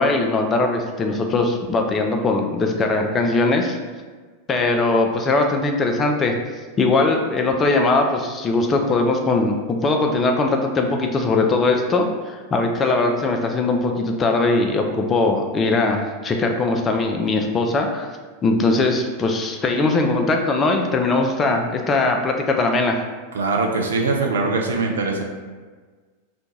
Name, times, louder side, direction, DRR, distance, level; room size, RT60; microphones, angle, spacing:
voice 1, 0.0-3.8 4.5-6.4 6.8-18.1 18.4-23.0, left 3 dB, 20° left, 3 dB, 0.3 m, -20 dB
voice 2, 23.3-25.2, right 3 dB, 65° right, 1 dB, 0.4 m, -22 dB
2.5 x 2.2 x 3.0 m, 1.4 s
figure-of-eight pair, 90°, 0 cm